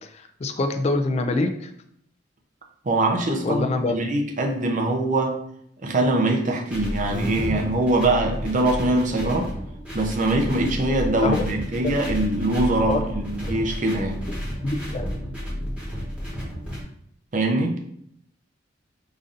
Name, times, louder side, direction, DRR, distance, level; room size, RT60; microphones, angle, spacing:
voice 1, 0.0-1.7 3.4-4.0 11.2-11.4 12.9-13.0 14.6-15.1, left 2 dB, 35° left, 7 dB, 0.3 m, -25 dB
voice 2, 2.8-5.4 5.8-9.5 9.9-14.2 17.3-17.8, right 2 dB, 45° right, 2 dB, 0.6 m, -23 dB
sound 1, 6.7-16.8, equal, 5° right, 1.1 m, -31 dB
5.1 x 2.6 x 2.5 m, 0.71 s
head